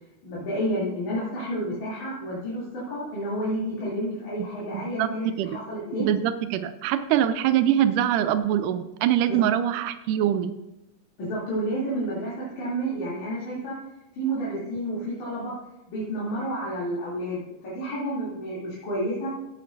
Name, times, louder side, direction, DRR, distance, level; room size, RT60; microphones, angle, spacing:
voice 1, 0.2-6.1 9.3-9.4 11.2-13.8 14.1-15.5 15.9-19.3, right 1 dB, 65° left, -8 dB, 4.3 m, -30 dB
voice 2, 4.7-5.6 6.0-10.5, right 11 dB, 90° right, 11 dB, 2.1 m, -24 dB
16.0 x 8.7 x 2.6 m, 0.94 s
omnidirectional pair, 3.6 m